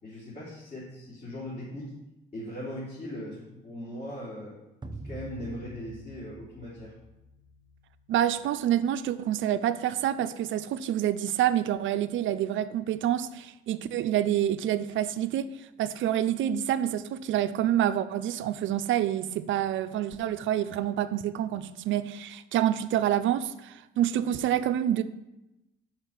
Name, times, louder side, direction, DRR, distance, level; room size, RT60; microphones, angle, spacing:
voice 1, 0.0-1.9 2.3-4.6 5.0-6.9, equal, 35° left, 3.3 m, -39 dB
sound 1, 4.8-9.3, right 1 dB, 20° right, 0.8 m, -46 dB
voice 2, 8.1-15.5 15.8-25.0, right 11 dB, 75° right, 0.5 m, -27 dB
6.5 x 5.9 x 7.2 m
cardioid pair, 90°, 20 cm